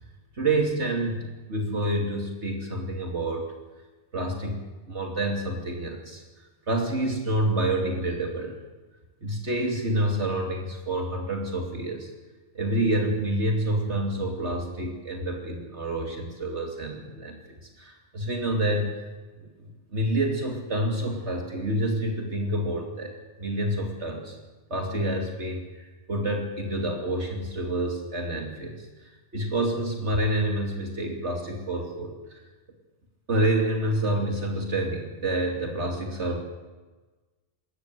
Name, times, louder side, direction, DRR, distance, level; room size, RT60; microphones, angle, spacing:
voice 1, 0.4-3.5 4.1-6.2 6.7-8.6 9.2-12.1 12.5-19.1 19.4-24.4 24.7-28.8 29.3-32.4 33.3-36.4, right 1 dB, 60° right, 1 dB, 3.1 m, -28 dB
27.0 x 14.0 x 7.9 m, 1.2 s
omnidirectional pair, 1.3 m